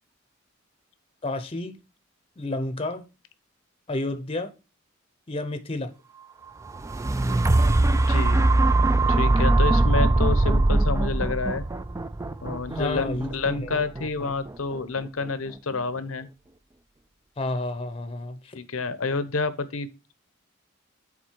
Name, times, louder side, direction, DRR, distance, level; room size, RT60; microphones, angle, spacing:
voice 1, 1.2-1.8 2.4-3.0 3.9-4.5 5.3-5.9 12.7-13.7 17.4-18.6, left 2 dB, 25° left, 0.7 m, -30 dB
sound 1, 6.6-14.7 15.3-15.4, right 2 dB, 15° right, 0.3 m, -22 dB
voice 2, 7.9-8.4 9.2-11.6 12.4-16.3 18.5-20.1, left 4 dB, 90° left, 0.8 m, -29 dB
7.3 x 4.2 x 4.4 m
head